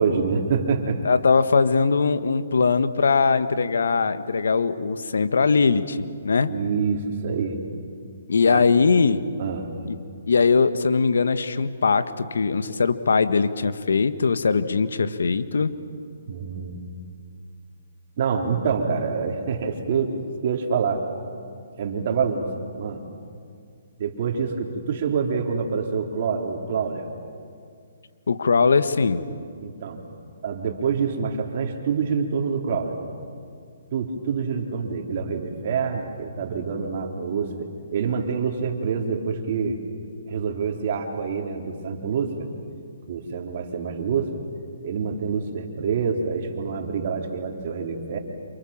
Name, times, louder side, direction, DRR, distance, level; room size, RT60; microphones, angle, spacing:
voice 1, 0.0-1.0 6.4-7.6 8.5-8.6 9.4-9.7 16.3-16.8 18.2-21.0 21.8-22.5 22.8-23.0 24.0-27.1 29.6-30.0 30.4-33.0 33.9-39.8 40.3-42.5 43.1-44.4 44.8-48.2, right 5 dB, 50° right, 2 dB, 3.9 m, -26 dB
voice 2, 1.0-6.5 8.3-9.2 9.9-10.0 10.3-15.7 28.3-29.2, left 5 dB, 75° left, 11 dB, 1.5 m, -21 dB
28.5 x 28.5 x 7.4 m, 2.2 s
hypercardioid pair, 145°, 0 cm